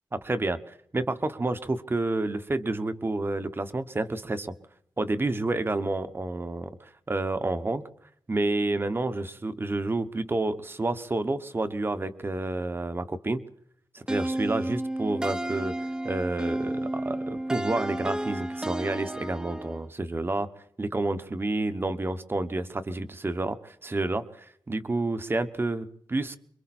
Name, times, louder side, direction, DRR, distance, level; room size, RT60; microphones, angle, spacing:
voice 1, 0.1-4.5 5.0-7.8 8.3-13.4 13.9-15.7 16.0-20.5 20.8-26.4, right 2 dB, 25° right, 11 dB, 1.3 m, -29 dB
sound 1, 14.1-19.9, right 1 dB, 10° right, 0.9 m, -32 dB
26.0 x 24.0 x 4.4 m, 0.68 s
wide cardioid pair, 175°, 9 cm